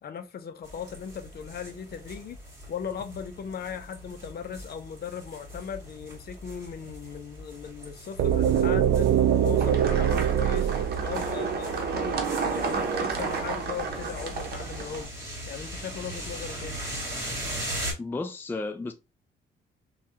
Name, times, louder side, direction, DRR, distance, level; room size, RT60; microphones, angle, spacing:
voice 1, 0.0-2.4 2.7-9.1 9.4-10.7 11.0-15.1 15.5-16.8, left 7 dB, 55° left, 0.6 m, -38 dB
sound 1, 0.6-17.9, equal, 15° right, 1.9 m, -40 dB
sound 2, 8.2-12.1, right 9 dB, 70° right, 0.4 m, -24 dB
sound 3, 9.6-15.1, right 5 dB, 55° right, 0.8 m, -31 dB
voice 2, 18.0-18.9, left 3 dB, 10° left, 0.4 m, -33 dB
3.3 x 2.3 x 2.8 m
cardioid pair, 90°, 20 cm